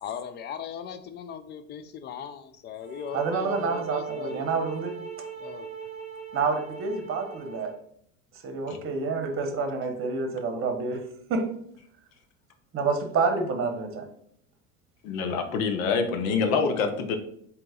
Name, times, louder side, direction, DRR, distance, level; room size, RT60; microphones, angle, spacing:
voice 1, 0.0-4.5 5.4-5.7 15.7-15.9, left 7 dB, 25° left, 11 dB, 0.3 m, -38 dB
sound 1, 2.8-7.8, right 7 dB, 15° right, 1.3 m, -39 dB
voice 2, 3.1-4.9 6.3-7.7 8.4-11.0 11.3-11.5 12.7-14.1, right 4 dB, 30° right, 6 dB, 1.0 m, -28 dB
voice 3, 15.0-17.2, left 5 dB, 75° left, 6 dB, 0.9 m, -26 dB
3.9 x 2.9 x 3.7 m, 0.69 s
hypercardioid pair, 95°, 41 cm